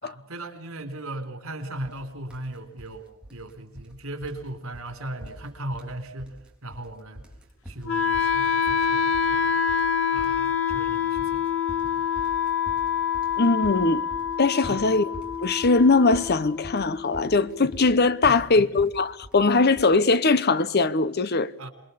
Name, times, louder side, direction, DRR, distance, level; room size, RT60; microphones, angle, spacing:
voice 1, 0.0-3.0 3.3-6.3 6.6-7.2 7.7-9.6 10.1-11.4 11.8-12.0 14.7-14.8 18.2-18.7 21.6-21.7, right 1 dB, 80° right, 3.8 m, -37 dB
sound 1, 1.8-2.0 2.3-2.9 3.2-4.0 4.2-4.5 4.7-4.9 5.2-5.9 6.2-6.9 7.2-20.0, equal, 5° right, 4.0 m, -44 dB
Wind instrument woodwind instrument, 7.9-17.9, left 8 dB, 70° left, 2.3 m, -26 dB
voice 2, 13.4-14.0 14.4-15.1 15.4-21.5, left 3 dB, 50° left, 0.9 m, -21 dB
27.5 x 22.0 x 7.0 m
head